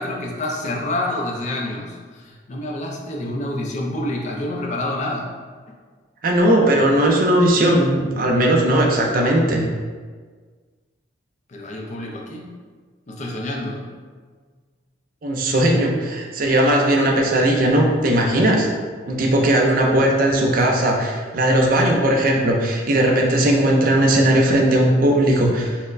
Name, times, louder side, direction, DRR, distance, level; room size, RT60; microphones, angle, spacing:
voice 1, 0.0-5.3 11.5-12.5 13.1-13.8, left 1 dB, 35° left, -1 dB, 0.4 m, -28 dB
voice 2, 6.2-9.7 15.2-18.7 19.1-25.7, right 1 dB, 45° right, 0 dB, 0.4 m, -18 dB
4.1 x 2.0 x 2.5 m, 1.5 s
head